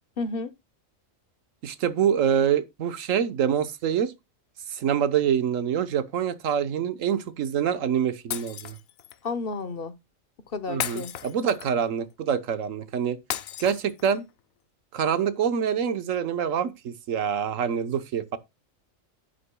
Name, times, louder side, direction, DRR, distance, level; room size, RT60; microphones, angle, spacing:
voice 1, 0.2-0.5 9.2-10.0 10.5-11.1, left 3 dB, 45° left, 1.0 m, -31 dB
voice 2, 1.6-4.1 4.7-8.8 10.7-13.2 13.6-14.2 14.9-18.4, right 8 dB, 70° right, 1.4 m, -26 dB
Shatter, 8.3-9.2 10.8-11.9 13.3-14.3, left 11 dB, 80° left, 1.1 m, -35 dB
11.0 x 9.9 x 2.2 m
omnidirectional pair, 1.4 m